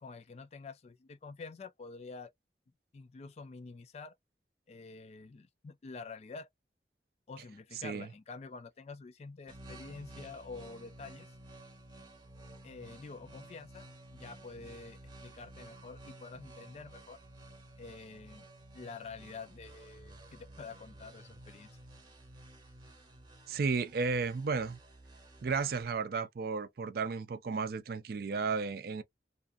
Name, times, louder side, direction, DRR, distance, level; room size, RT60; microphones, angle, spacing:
voice 1, 0.0-2.3 2.9-4.1 4.7-6.5 7.3-11.3 12.6-17.2 17.8-18.5 18.7-21.7, left 4 dB, 35° left, 0.3 m, -48 dB
voice 2, 7.7-8.1 23.5-24.8 25.4-29.0, right 4 dB, 55° right, 0.4 m, -33 dB
sound 1, 9.5-25.8, right 1 dB, 25° right, 0.8 m, -53 dB
2.5 x 2.4 x 2.4 m
head